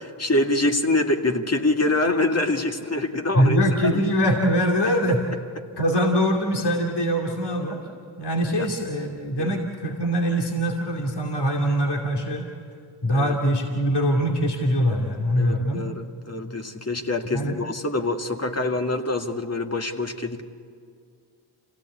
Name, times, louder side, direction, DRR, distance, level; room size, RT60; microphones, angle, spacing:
voice 1, 0.0-3.6 3.9-4.0 8.5-8.7 9.4-9.6 13.1-13.4 15.4-20.4, left 2 dB, 30° left, 4 dB, 2.0 m, -25 dB
voice 2, 3.3-5.2 5.8-7.8 8.2-12.4 13.0-15.9 17.3-17.6, equal, 55° left, 1 dB, 2.7 m, -23 dB
26.5 x 17.0 x 8.5 m, 2.3 s
supercardioid pair, 50°, 49 cm